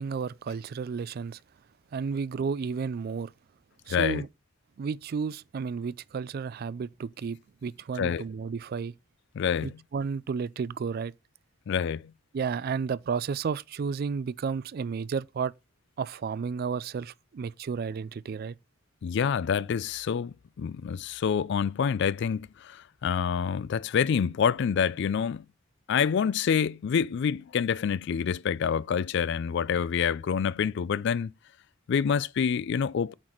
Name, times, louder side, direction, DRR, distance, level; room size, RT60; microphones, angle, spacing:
voice 1, 0.0-1.4 1.9-3.3 3.9-4.3 4.8-8.9 9.6-11.1 12.3-15.5 16.0-18.6, right 5 dB, 50° right, 0.3 m, -32 dB
voice 2, 3.9-4.2 8.0-8.2 9.3-9.8 11.7-12.1 19.0-25.4 25.9-31.3 31.9-33.1, left 7 dB, 60° left, 0.3 m, -27 dB
8.7 x 4.1 x 4.4 m
head